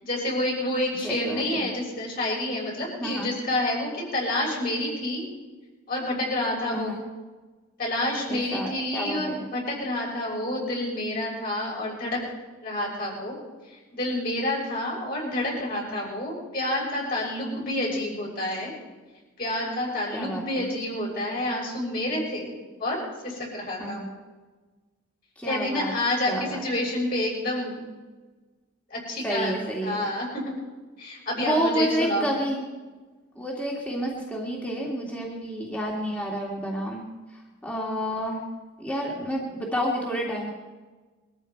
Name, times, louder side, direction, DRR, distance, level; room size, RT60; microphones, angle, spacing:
voice 1, 0.0-5.2 5.9-7.0 7.8-12.2 12.6-13.3 13.9-18.7 19.4-22.5 22.8-23.0 23.2-24.1 25.4-27.9 28.9-30.5 31.0-32.3, left 1 dB, 45° left, -3 dB, 6.7 m, -28 dB
voice 2, 1.0-1.6 2.8-3.3 6.7-7.0 8.3-9.4 20.1-20.6 23.8-24.1 25.4-25.9 26.3-26.6 29.2-30.1 31.4-32.6 33.4-37.1 37.6-38.4 38.8-40.5, equal, 5° left, -3 dB, 2.2 m, -29 dB
22.5 x 14.0 x 4.6 m, 1.3 s
head